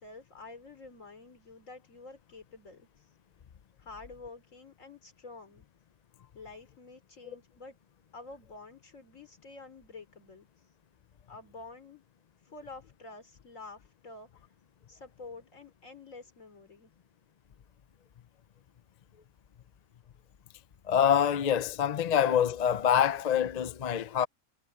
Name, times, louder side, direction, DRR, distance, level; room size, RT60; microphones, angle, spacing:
voice 1, 0.0-3.1 3.8-5.6 6.3-7.8 8.1-10.5 11.3-12.0 12.4-14.4 14.9-16.9, left 3 dB, 80° left, 3.6 m, -49 dB
voice 2, 20.8-24.3, left 9 dB, 45° left, 0.5 m, -25 dB
omnidirectional pair, 1.3 m